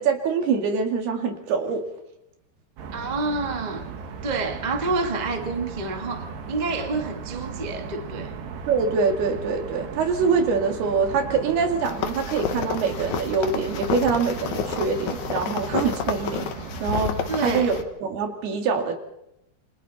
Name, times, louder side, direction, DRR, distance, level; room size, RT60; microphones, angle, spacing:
voice 1, 0.0-1.8 8.7-16.5 16.8-19.0, right 5 dB, 70° right, 4.2 m, -24 dB
sound 1, 2.8-17.8, right 6 dB, 90° right, 4.1 m, -37 dB
voice 2, 2.9-3.9 4.2-8.3 17.3-17.7, right 3 dB, 40° right, 0.5 m, -28 dB
sound 2, 11.8-17.8, left 7 dB, 60° left, 2.2 m, -30 dB
29.0 x 25.0 x 4.2 m
omnidirectional pair, 4.7 m